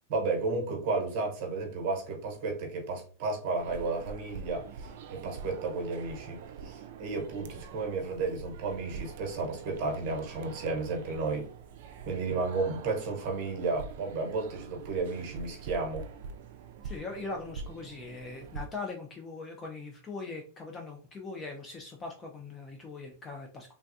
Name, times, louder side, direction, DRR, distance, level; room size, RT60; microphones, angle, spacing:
voice 1, 0.1-11.5 12.0-16.1, right 3 dB, 50° right, 1 dB, 1.0 m, -33 dB
sound 1, 3.6-18.7, right 5 dB, 65° right, 0.3 m, -45 dB
voice 2, 16.8-23.7, left 3 dB, 20° left, 2 dB, 0.4 m, -41 dB
3.3 x 2.3 x 2.6 m, 0.40 s
supercardioid pair, 140°, 0 cm